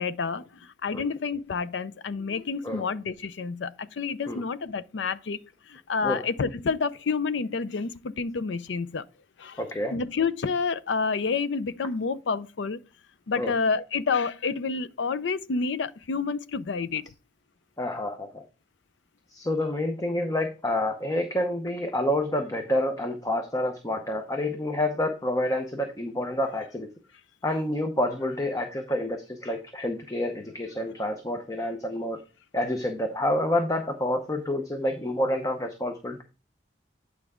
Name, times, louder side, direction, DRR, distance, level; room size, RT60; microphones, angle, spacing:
voice 1, 0.0-5.4 5.7-9.0 9.4-9.6 9.9-12.8 13.3-17.0, left 5 dB, 75° left, 0.5 m, -29 dB
voice 2, 9.6-9.9 13.4-13.5 17.8-18.4 19.3-26.9 27.4-32.2 32.5-36.2, left 1 dB, 20° left, 0.7 m, -28 dB
9.0 x 4.7 x 3.6 m
head